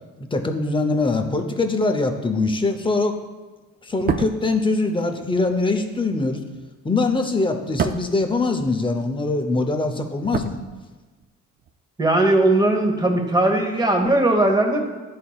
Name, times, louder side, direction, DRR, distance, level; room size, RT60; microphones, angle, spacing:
voice 1, 0.3-3.2 3.8-6.4 6.8-10.6, left 3 dB, 15° left, 5 dB, 0.7 m, -22 dB
sound 1, 3.9-9.2 9.5-11.3 11.6-11.7, right 6 dB, 35° right, 0.4 m, -31 dB
voice 2, 12.0-14.9, right 2 dB, 15° right, 2 dB, 1.1 m, -19 dB
10.5 x 4.2 x 2.4 m, 1.2 s
cardioid pair, 90°, 30 cm